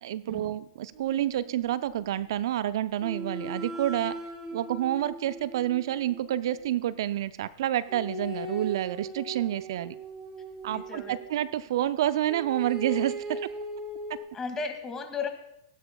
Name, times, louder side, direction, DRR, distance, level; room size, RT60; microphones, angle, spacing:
voice 1, 0.0-4.1 4.5-10.0 10.6-13.5, right 12 dB, 60° right, 15 dB, 0.4 m, -29 dB
sound 1, 0.9-2.4 3.0-6.9 7.9-11.6 12.3-14.2, right 1 dB, 20° right, 4.7 m, -39 dB
voice 2, 10.7-11.2 14.3-15.3, left 5 dB, 20° left, 6 dB, 2.0 m, -35 dB
18.5 x 15.0 x 2.3 m, 0.81 s
hypercardioid pair, 105°, 3 cm